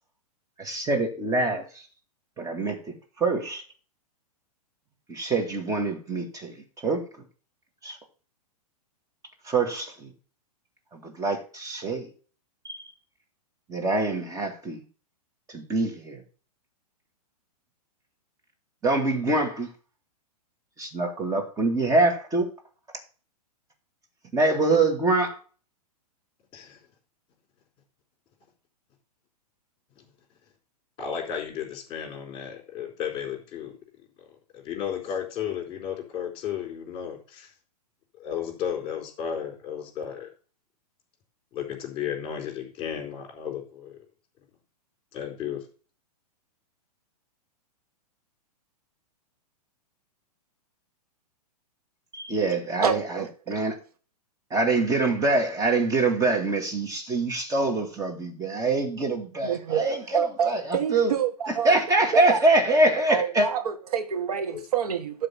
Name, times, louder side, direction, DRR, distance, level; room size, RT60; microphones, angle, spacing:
voice 1, 0.6-1.8 2.4-3.6 5.1-6.5 6.8-7.1 7.8-8.0 9.5-10.1 10.9-12.1 12.6-12.8 13.7-14.8 15.5-16.2 18.8-19.7 20.8-22.5 24.3-25.4 52.1-53.7 54.5-61.1 61.6-63.5, right 2 dB, 15° right, 2.4 m, -25 dB
voice 2, 31.0-33.7 34.5-37.5 38.2-40.3 41.5-44.0 45.1-45.6 64.5-64.6, left 8 dB, 25° left, 4.3 m, -33 dB
voice 3, 52.8-53.3 59.4-61.8 62.1-62.4 62.7-62.8 63.1-65.3, right 8 dB, 70° right, 1.9 m, -27 dB
12.0 x 4.0 x 7.2 m
figure-of-eight pair, 110°, 20 cm